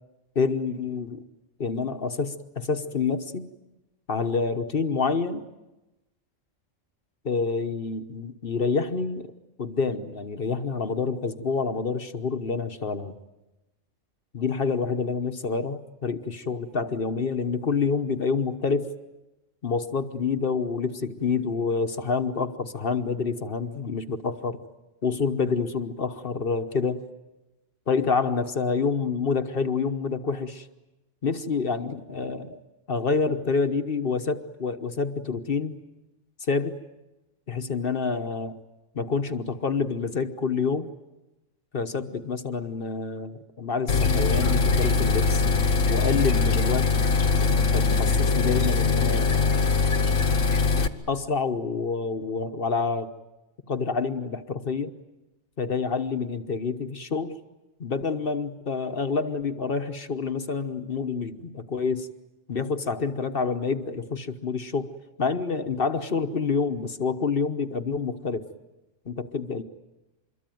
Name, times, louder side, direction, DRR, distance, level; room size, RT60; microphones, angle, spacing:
voice 1, 0.3-1.2 1.6-3.5 4.1-5.5 7.2-9.3 9.6-13.2 14.3-18.9 19.6-24.6 25.0-27.0 27.9-30.7 31.2-32.6 32.9-35.8 36.5-36.8 37.5-38.6 38.9-40.9 41.7-45.6 45.9-46.9 47.7-49.6 51.1-53.1 53.7-54.9 55.6-57.4 57.8-62.1 62.5-64.9 65.2-68.4 69.0-69.6, left 5 dB, 50° left, 9 dB, 1.2 m, -27 dB
sound 1, 43.9-50.9, left 4 dB, 85° left, 1.6 m, -22 dB
26.0 x 22.5 x 9.2 m, 1.0 s
omnidirectional pair, 1.3 m